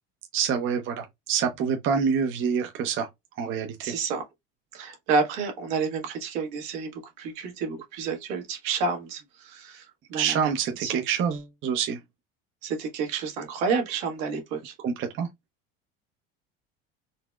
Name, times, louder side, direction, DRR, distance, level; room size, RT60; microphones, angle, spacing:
voice 1, 0.3-3.1 3.4-4.0 10.1-12.0 14.8-15.3, right 7 dB, 45° right, 0.6 m, -27 dB
voice 2, 3.8-4.2 4.7-10.5 10.8-11.0 12.6-14.7, right 5 dB, 75° right, 1.3 m, -30 dB
4.0 x 2.0 x 2.2 m
supercardioid pair, 105°, 29 cm